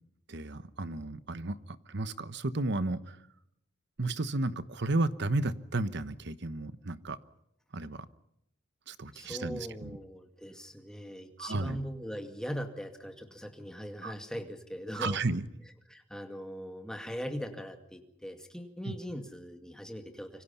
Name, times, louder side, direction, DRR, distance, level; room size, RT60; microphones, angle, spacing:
voice 1, 0.3-3.2 4.0-7.2 7.7-8.1 8.9-9.9 11.4-11.8 14.0-14.1 15.0-15.5 18.8-18.9, right 2 dB, 60° right, 14 dB, 1.1 m, -33 dB
voice 2, 9.1-15.2 15.9-20.4, equal, 5° left, 5 dB, 2.2 m, -40 dB
26.5 x 24.5 x 5.7 m, 0.82 s
head